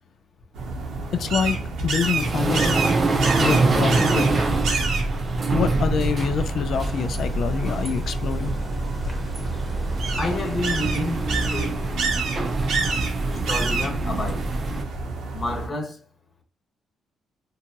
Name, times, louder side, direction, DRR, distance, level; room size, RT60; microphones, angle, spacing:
sound 1, 0.5-15.7, right 3 dB, 80° right, 0.9 m, -29 dB
sound 2, 0.8-14.8, right 3 dB, 40° right, 0.6 m, -25 dB
voice 1, 1.1-2.8 3.4-4.5 5.5-8.6, left 7 dB, 65° left, 0.3 m, -26 dB
sound 3, 6.7-11.7, right 2 dB, 10° right, 1.0 m, -35 dB
voice 2, 10.2-11.8 13.3-14.5 15.3-16.0, left 2 dB, 30° left, 1.0 m, -29 dB
2.7 x 2.2 x 2.8 m
cardioid pair, 90°, 0 cm